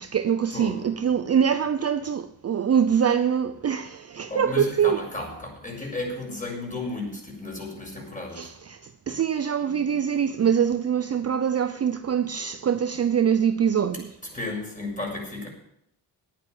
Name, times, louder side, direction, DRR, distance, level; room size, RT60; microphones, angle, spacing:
voice 1, 0.0-5.0 8.3-8.8 9.1-14.1, right 8 dB, 35° right, 0.7 m, -24 dB
voice 2, 4.3-8.5 9.1-9.2 14.3-15.5, left 2 dB, 15° left, 6.9 m, -33 dB
11.0 x 9.4 x 8.1 m
cardioid pair, 85°, 44 cm